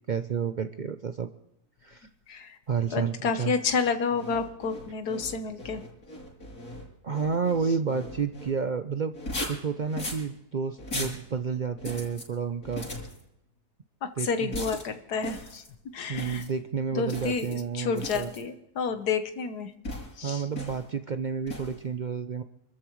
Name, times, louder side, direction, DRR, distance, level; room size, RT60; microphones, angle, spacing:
voice 1, 0.1-1.3 1.8-2.1 2.7-3.5 7.0-9.1 9.5-12.9 14.2-14.6 16.1-18.3 20.2-22.4, right 6 dB, 70° right, 9 dB, 0.4 m, -30 dB
voice 2, 2.3-2.6 2.9-5.8 14.2-15.6 15.9-16.4 16.9-19.7 20.2-20.4, left 5 dB, 90° left, 8 dB, 1.7 m, -30 dB
sound 1, 4.1-8.5 9.1-10.3 10.8-11.2 11.8-12.3 12.6-13.2 14.5-14.9 15.2-15.7 16.1-16.5 17.1-17.6 18.0-18.4 19.8-20.2 20.5-20.9 21.5-21.8, left 1 dB, 75° left, 6.9 m, -38 dB
28.0 x 14.0 x 3.1 m, 0.80 s
omnidirectional pair, 1.6 m